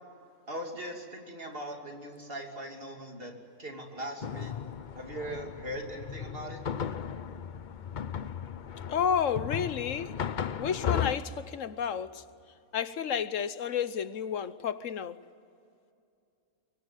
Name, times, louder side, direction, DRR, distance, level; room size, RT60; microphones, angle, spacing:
voice 1, 0.5-3.3 3.6-4.5 4.9-6.6, equal, 40° right, 3.1 m, -40 dB
sound 1, 4.2-11.2, left 8 dB, 45° left, 0.6 m, -35 dB
voice 2, 8.9-10.2 10.6-12.2 12.7-15.2, left 8 dB, 65° left, 1.1 m, -31 dB
24.5 x 23.5 x 9.1 m
omnidirectional pair, 1.5 m